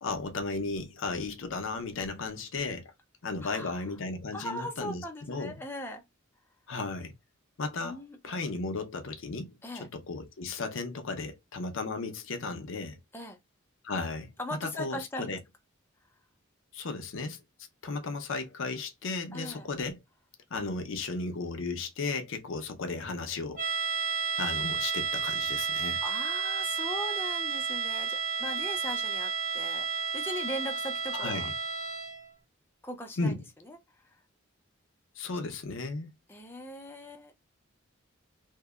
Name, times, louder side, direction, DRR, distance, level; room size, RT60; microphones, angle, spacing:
voice 1, 0.0-2.9 3.2-5.0 5.3-5.6 6.7-7.1 7.6-13.0 13.8-15.4 16.7-17.4 17.8-20.0 20.5-23.7 24.4-26.0 31.1-31.5 33.2-33.4 35.2-36.1, left 3 dB, 65° left, 0.6 m, -35 dB
voice 2, 3.4-3.8 4.3-6.0 7.8-8.4 9.6-9.9 13.1-13.4 14.4-15.4 19.3-19.7 26.0-31.5 32.8-33.3 33.7-33.8 36.3-37.4, left 1 dB, 10° left, 0.4 m, -39 dB
sound 1, 23.6-32.3, right 6 dB, 75° right, 1.4 m, -32 dB
2.7 x 2.0 x 2.3 m
head